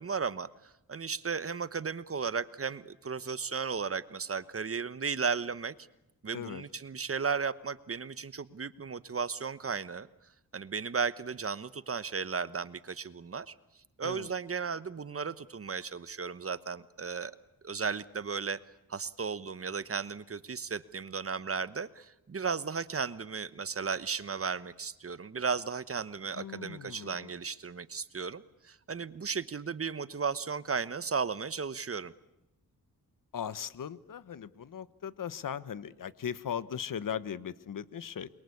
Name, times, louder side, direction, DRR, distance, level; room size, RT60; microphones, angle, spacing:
voice 1, 0.0-5.7 6.2-10.1 10.5-13.5 14.0-17.3 17.6-18.6 18.9-32.1, right 5 dB, 40° right, 16 dB, 1.1 m, -35 dB
voice 2, 6.3-6.6 14.0-14.3 26.3-27.3 33.3-38.3, left 8 dB, 65° left, 17 dB, 1.2 m, -38 dB
29.0 x 23.0 x 8.5 m, 0.87 s
wide cardioid pair, 95°, 35 cm